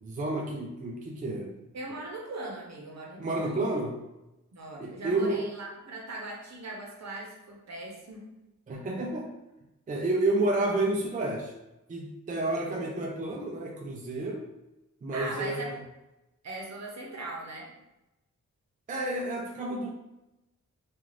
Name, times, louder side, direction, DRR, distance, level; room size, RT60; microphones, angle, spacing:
voice 1, 0.0-1.6 3.2-3.9 4.8-5.5 8.7-9.3 9.9-11.5 11.9-14.5 15.0-15.8 18.9-19.9, right 2 dB, 25° right, -1 dB, 0.4 m, -30 dB
voice 2, 1.7-3.7 4.5-8.3 15.1-15.7 16.4-17.7, right 2 dB, 60° right, -2 dB, 0.7 m, -39 dB
2.4 x 2.4 x 3.1 m, 0.96 s
wide cardioid pair, 105°, 31 cm